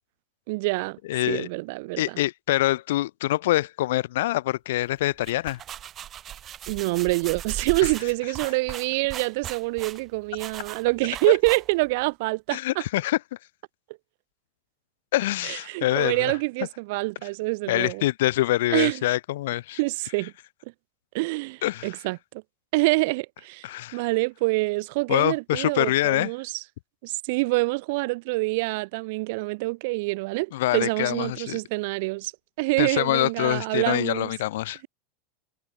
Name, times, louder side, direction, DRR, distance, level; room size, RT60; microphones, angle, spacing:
voice 1, 0.5-1.0 1.3-2.2 6.7-12.8 15.4-18.0 18.7-19.0 19.8-20.3 21.1-22.2 22.7-23.7 23.9-26.6 27.0-32.3 32.6-34.3, right 25 dB, 50° right, 1.0 m, -26 dB
voice 2, 1.1-1.5 2.0-5.6 7.8-7.9 12.5-13.2 15.1-16.3 17.7-19.8 21.6-21.9 23.6-24.0 25.1-26.3 30.5-31.6 32.8-34.8, left 16 dB, 70° left, 0.4 m, -25 dB
sound 1, 5.1-12.0, right 10 dB, 20° right, 0.8 m, -38 dB
supercardioid pair, 175°, 0 cm